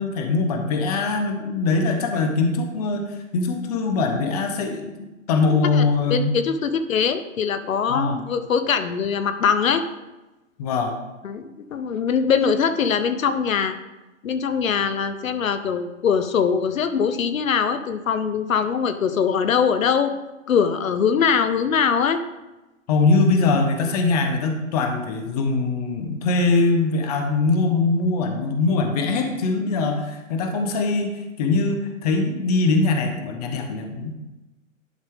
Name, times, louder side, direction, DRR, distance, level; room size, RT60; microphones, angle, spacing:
voice 1, 0.0-4.9 5.3-6.3 7.9-8.2 10.6-10.9 22.9-34.1, left 3 dB, 30° left, 4 dB, 1.0 m, -22 dB
voice 2, 6.1-9.8 11.2-13.8 14.2-20.1 20.5-22.2, left 6 dB, 90° left, 10 dB, 0.8 m, -22 dB
11.0 x 5.2 x 3.6 m, 1.1 s
hypercardioid pair, 155°, 39 cm